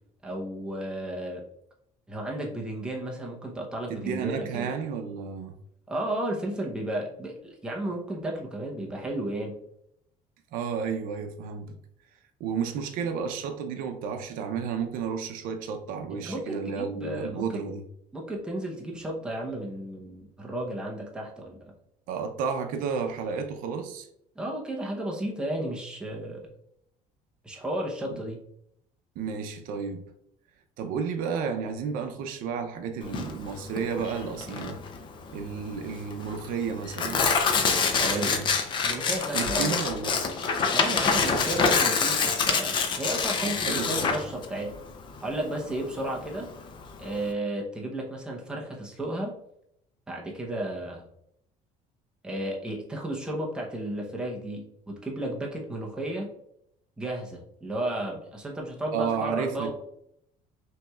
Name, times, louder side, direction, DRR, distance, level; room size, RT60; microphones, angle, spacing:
voice 1, 0.2-1.4 2.1-4.7 5.9-9.6 16.1-17.6 18.1-21.7 24.4-26.4 27.4-28.4 38.0-38.4 38.8-39.8 40.7-44.7 45.2-46.5 47.0-49.3 50.1-51.1 52.2-56.3 57.0-59.7, right 1 dB, 5° right, -1 dB, 0.7 m, -33 dB
voice 2, 3.9-5.5 10.5-11.7 12.4-17.8 22.1-24.1 28.1-28.2 29.2-30.1 30.8-34.8 35.3-37.2 37.9-38.5 39.3-40.2 43.4-44.1 58.9-59.7, right 6 dB, 75° right, 5 dB, 0.6 m, -32 dB
Tearing, 33.0-47.3, left 5 dB, 35° left, 0.5 m, -27 dB
5.6 x 3.1 x 2.3 m, 0.73 s
cardioid pair, 165°, 15 cm